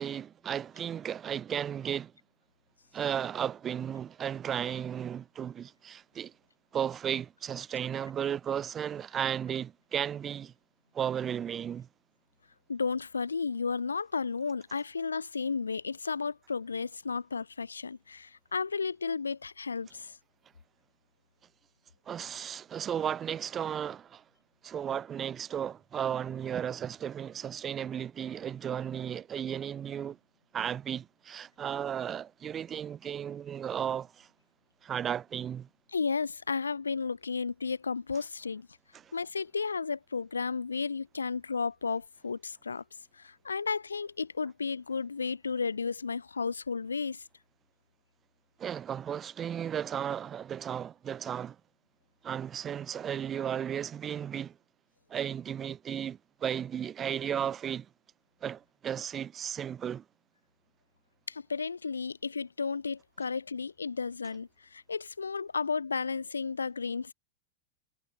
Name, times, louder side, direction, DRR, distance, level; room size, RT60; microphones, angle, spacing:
voice 1, 0.0-2.1 2.9-6.3 6.7-10.5 10.9-11.9 22.1-24.2 24.6-30.2 30.5-34.3 34.8-35.7 38.9-39.1 48.6-51.6 52.2-54.6 55.1-57.9 58.4-60.0, right 9 dB, 25° right, 0.9 m, -34 dB
voice 2, 12.7-20.2 35.9-38.7 39.1-42.8 43.1-47.2 61.3-67.1, left 5 dB, 75° left, 0.9 m, -33 dB
figure-of-eight pair, 90°, 0 cm